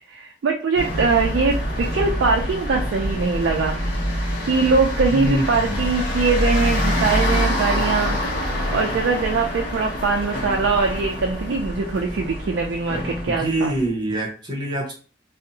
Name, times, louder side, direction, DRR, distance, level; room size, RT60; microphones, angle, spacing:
voice 1, 0.1-3.8 4.5-13.7, right 4 dB, 70° right, 2 dB, 0.3 m, -22 dB
sound 1, 0.7-13.8, equal, 45° left, 0.7 m, -25 dB
voice 2, 5.1-5.8 13.3-14.9, right 1 dB, 20° right, -3 dB, 0.8 m, -25 dB
2.6 x 2.0 x 2.7 m, 0.39 s
head